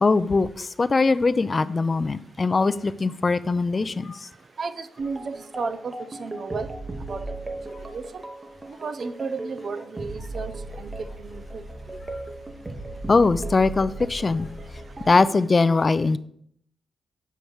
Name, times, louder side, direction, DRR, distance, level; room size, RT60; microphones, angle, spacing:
voice 1, 0.0-4.2 13.1-14.5 15.1-16.2, left 3 dB, 35° left, 15 dB, 0.4 m, -21 dB
voice 2, 4.6-6.7 7.1-7.3 7.8-8.2 8.7-11.6, right 4 dB, 55° right, 11 dB, 0.6 m, -33 dB
sound 1, 5.0-15.2, right 2 dB, 25° right, 0.9 m, -37 dB
8.0 x 5.6 x 4.7 m, 0.66 s
cardioid pair, 90°, 0 cm